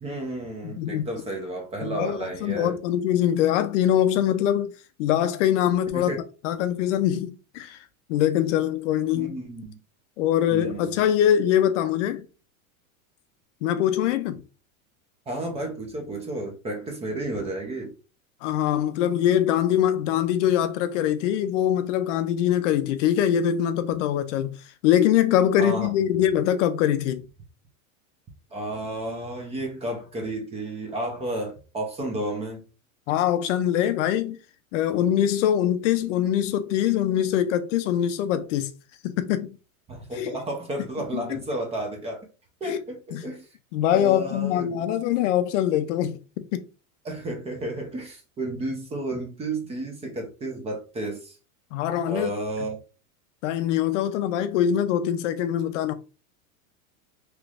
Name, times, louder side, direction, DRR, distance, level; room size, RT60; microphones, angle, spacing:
voice 1, 0.0-2.7 5.9-6.2 9.1-9.8 10.5-11.0 15.3-17.9 25.6-25.9 28.5-32.6 39.9-42.3 42.6-43.5 43.9-44.8 47.0-51.4 52.1-52.8, right 1 dB, 15° right, 0.5 m, -32 dB
voice 2, 0.6-1.1 1.8-6.1 6.4-7.8 8.1-9.4 10.2-12.3 13.6-14.4 18.4-24.6 24.8-27.3 33.1-34.4 34.7-38.7 39.0-39.6 40.1-40.3 41.1-41.4 42.6-42.8 43.1-43.3 43.7-46.6 51.7-52.3 53.4-55.9, left 10 dB, 60° left, 0.5 m, -23 dB
3.2 x 3.0 x 2.4 m
supercardioid pair, 135°, 42 cm